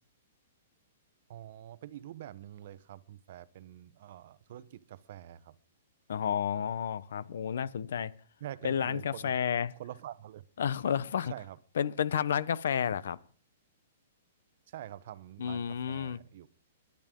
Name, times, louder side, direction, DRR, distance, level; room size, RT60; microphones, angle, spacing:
voice 1, 1.3-5.6 8.4-9.3 9.8-10.4 11.3-11.6 14.7-16.5, right 12 dB, 50° right, 0.8 m, -46 dB
voice 2, 6.1-8.1 8.6-9.7 10.6-11.3 11.8-13.2 15.4-16.2, left 8 dB, 70° left, 0.8 m, -31 dB
21.5 x 10.5 x 3.8 m
hypercardioid pair, 170°, 0 cm